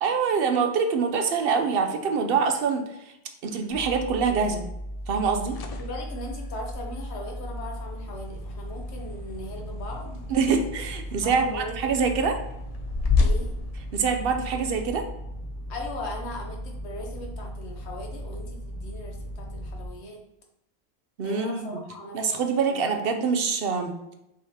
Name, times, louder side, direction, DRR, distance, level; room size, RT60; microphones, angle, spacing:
voice 1, 0.0-2.8 3.4-4.6 5.1-5.6 10.3-12.4 13.9-15.0 21.2-21.8 22.1-23.9, right 5 dB, 65° right, 5 dB, 0.8 m, -25 dB
sound 1, 3.7-19.9, equal, ahead, 1.4 m, -37 dB
sound 2, 5.5-14.6, left 4 dB, 55° left, 0.4 m, -32 dB
voice 2, 5.8-10.2 11.2-11.7 12.0-12.1 13.2-13.5 15.7-20.2 21.2-22.4 22.7-22.9, left 1 dB, 80° left, 1 dB, 1.2 m, -38 dB
5.5 x 3.3 x 2.8 m, 0.85 s
omnidirectional pair, 1.1 m